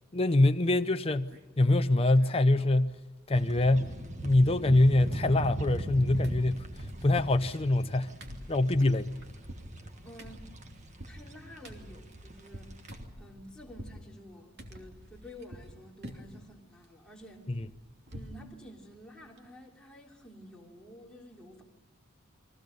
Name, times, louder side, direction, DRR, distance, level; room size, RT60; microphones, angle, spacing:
voice 1, 0.1-3.0 3.3-3.9 4.2-6.6 7.0-8.1 8.5-9.2 17.5-17.7, left 2 dB, 25° left, 0.6 m, -24 dB
sound 1, 1.3-1.7 2.0-2.8 3.1-3.2 3.5-4.3 4.6-5.9 6.2-14.0 14.6-15.7 16.0-16.5 16.8-18.4 18.8-18.9 19.2-19.4, equal, 50° right, 2.9 m, -48 dB
sound 2, 3.3-13.0, right 1 dB, 35° right, 1.7 m, -41 dB
voice 2, 9.8-10.5 11.1-12.7 13.2-17.5 18.1-21.6, equal, 5° left, 3.4 m, -50 dB
30.0 x 23.0 x 5.4 m
head